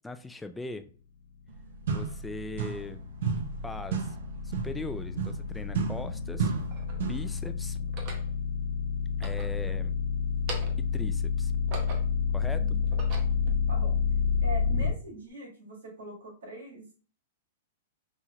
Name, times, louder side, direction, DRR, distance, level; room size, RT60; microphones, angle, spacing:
voice 1, 0.0-0.9 1.9-3.0 3.6-4.2 4.4-6.5 7.0-7.9 9.2-9.9 10.8-11.5 12.3-12.8, left 3 dB, 5° left, 9 dB, 0.3 m, -40 dB
sound 1, 1.5-1.6 1.9-3.0 3.2-7.3, right 6 dB, 65° right, 0.6 m, -33 dB
sound 2, 1.6-14.9, left 6 dB, 80° left, 0.7 m, -29 dB
sound 3, 5.3-5.4 6.2-7.1 7.8-8.3 9.1-10.0 10.3-10.9 11.4-12.3 12.8-13.5, right 3 dB, 45° right, 0.9 m, -42 dB
voice 2, 12.4-12.8 13.7-14.0 14.4-16.9, right 1 dB, 90° right, 0 dB, 1.7 m, -42 dB
5.4 x 3.1 x 2.3 m, 0.39 s
hypercardioid pair, 135°, 0 cm